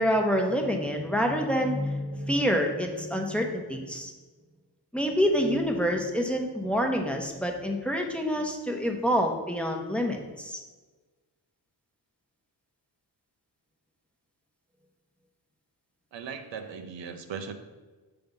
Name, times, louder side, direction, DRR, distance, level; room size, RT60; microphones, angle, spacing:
voice 1, 0.0-4.1 4.9-10.6, equal, 5° left, 2 dB, 0.9 m, -27 dB
voice 2, 16.1-17.5, right 6 dB, 90° right, 7 dB, 0.7 m, -38 dB
6.8 x 3.5 x 5.2 m, 1.3 s
cardioid pair, 85°, 43 cm